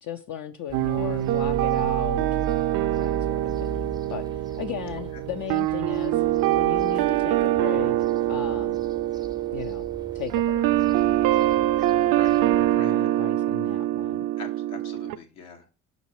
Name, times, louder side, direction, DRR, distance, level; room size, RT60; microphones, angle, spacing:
voice 1, 0.0-2.4 3.0-8.0 8.3-8.8 9.5-9.9 10.1-10.6 12.4-14.2, left 10 dB, 55° left, 0.6 m, -36 dB
sound 1, 0.7-12.8, right 4 dB, 10° right, 0.5 m, -39 dB
sound 2, 0.7-15.1, right 14 dB, 65° right, 0.5 m, -24 dB
voice 2, 14.4-15.7, left 5 dB, 75° left, 1.6 m, -43 dB
5.2 x 4.0 x 4.7 m
supercardioid pair, 65°, 37 cm